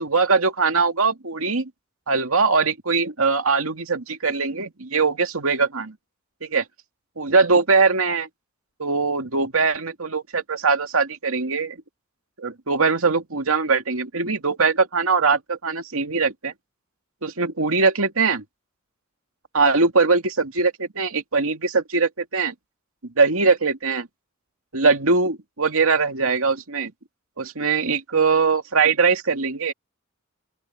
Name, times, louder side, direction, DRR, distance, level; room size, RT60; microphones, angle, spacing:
voice 1, 0.0-1.7 2.1-5.9 6.4-6.6 7.2-8.3 8.8-11.8 12.4-16.5 17.2-18.4 19.5-22.5 23.2-24.1 24.7-26.9 27.4-29.7, right 4 dB, 85° right, 2.3 m, -21 dB
open air
head